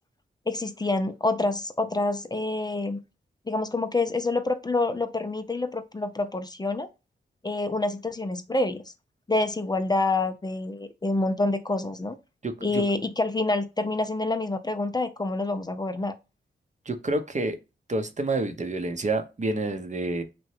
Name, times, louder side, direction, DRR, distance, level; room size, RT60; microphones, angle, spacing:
voice 1, 0.5-3.0 3.5-6.9 7.4-8.8 9.3-12.2 12.6-16.1, left 2 dB, 20° left, 0.5 m, -27 dB
voice 2, 12.4-12.8 16.9-17.6 17.9-20.2, right 2 dB, 35° right, 0.7 m, -28 dB
2.8 x 2.2 x 3.1 m
supercardioid pair, 40°, 20 cm